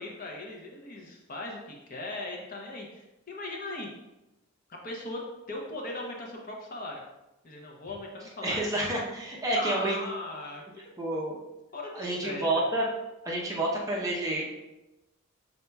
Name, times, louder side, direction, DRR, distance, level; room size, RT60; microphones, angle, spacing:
voice 1, 0.0-3.9 4.7-7.0 7.4-8.6 9.6-10.9 11.7-12.5, left 2 dB, 40° left, 0 dB, 0.7 m, -39 dB
voice 2, 8.4-10.0 11.0-11.3 11.9-12.9 13.2-14.4, right 1 dB, 15° right, -3 dB, 0.7 m, -29 dB
5.4 x 4.2 x 2.3 m, 0.98 s
head